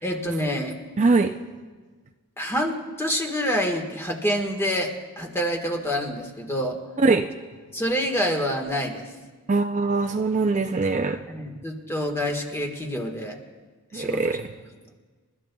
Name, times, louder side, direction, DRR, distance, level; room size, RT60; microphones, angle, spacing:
voice 1, 0.0-0.7 2.4-6.8 7.7-9.1 11.3-13.4 13.9-14.4, equal, 10° left, 3 dB, 1.4 m, -27 dB
voice 2, 1.0-1.3 7.0-7.3 9.5-11.2 13.9-14.5, right 3 dB, 35° right, 5 dB, 0.4 m, -22 dB
29.0 x 13.5 x 2.3 m, 1.4 s
head